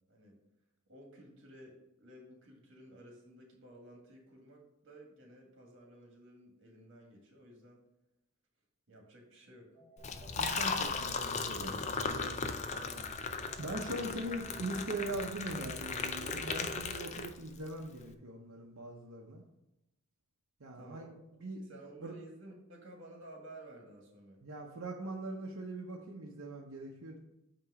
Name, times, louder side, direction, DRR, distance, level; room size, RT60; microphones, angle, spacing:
voice 1, 0.9-7.8 8.9-9.7 12.2-13.1 20.7-21.1 21.6-24.4, right 1 dB, 60° right, 0 dB, 1.7 m, -54 dB
sound 1, 9.7-17.1, right 3 dB, 25° right, 2.3 m, -58 dB
Liquid, 10.0-17.7, left 4 dB, 35° left, 0.4 m, -37 dB
voice 2, 10.4-11.8 13.6-19.4 20.6-21.1 21.4-21.6 22.0-22.1 24.4-27.2, right 2 dB, 85° right, -1 dB, 0.8 m, -41 dB
8.6 x 3.0 x 4.8 m, 0.86 s
head